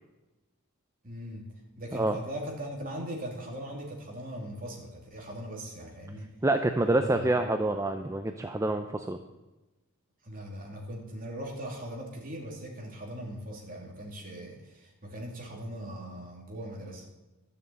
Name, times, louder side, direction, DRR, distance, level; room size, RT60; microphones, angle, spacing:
voice 1, 1.0-6.3 6.8-7.3 10.2-17.0, equal, 40° right, 0 dB, 2.9 m, -40 dB
voice 2, 6.4-9.2, right 2 dB, 15° right, 6 dB, 0.5 m, -27 dB
12.5 x 6.7 x 8.7 m, 1.1 s
head